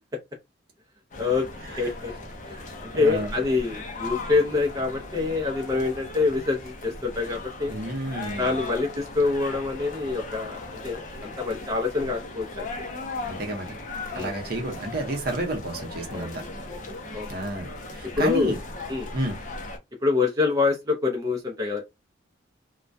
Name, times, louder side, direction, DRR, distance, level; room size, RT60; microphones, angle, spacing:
sound 1, 1.1-19.8, left 2 dB, 40° left, 0.5 m, -38 dB
voice 1, 1.8-2.1 2.4-2.6 3.0-7.7 8.4-12.9 14.1-14.4 16.1-16.3 17.1-17.3 18.2-18.5 18.9-19.1 20.0-21.8, left 4 dB, 20° right, 0.5 m, -26 dB
voice 2, 2.9-3.3 7.7-8.6 13.3-13.8 14.1-16.4 17.3-18.6 19.1-19.4, right 1 dB, 55° right, 0.7 m, -31 dB
2.2 x 2.1 x 2.5 m
head